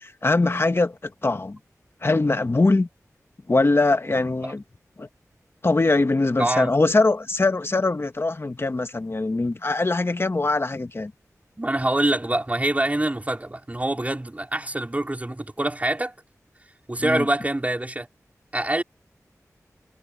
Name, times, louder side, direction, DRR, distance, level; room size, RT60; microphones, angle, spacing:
voice 1, 0.0-1.6 2.0-2.9 3.5-4.6 5.0-5.1 5.6-11.1 17.0-17.3, left 2 dB, 45° left, 1.5 m, -22 dB
voice 2, 6.4-6.9 11.6-16.1 16.9-18.1 18.5-18.8, right 1 dB, 25° right, 4.6 m, -25 dB
wide cardioid pair, 60°, 6 cm